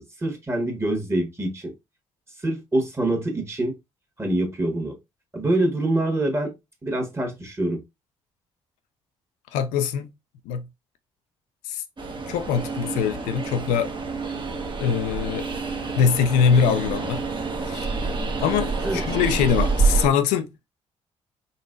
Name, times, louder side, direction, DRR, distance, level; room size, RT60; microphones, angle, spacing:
voice 1, 0.0-1.7 2.4-3.7 4.2-5.0 5.3-6.5 6.8-7.8 18.8-19.0, right 1 dB, 20° right, 1.4 m, -25 dB
voice 2, 9.5-10.1 10.5-10.7 11.7-11.8 12.3-13.9 14.8-15.5 15.9-17.2 17.6-17.9 18.4-20.5, left 7 dB, 85° left, 0.4 m, -23 dB
Train, 12.0-20.1, right 4 dB, 40° right, 1.0 m, -27 dB
3.8 x 3.0 x 2.5 m
supercardioid pair, 55°, 13 cm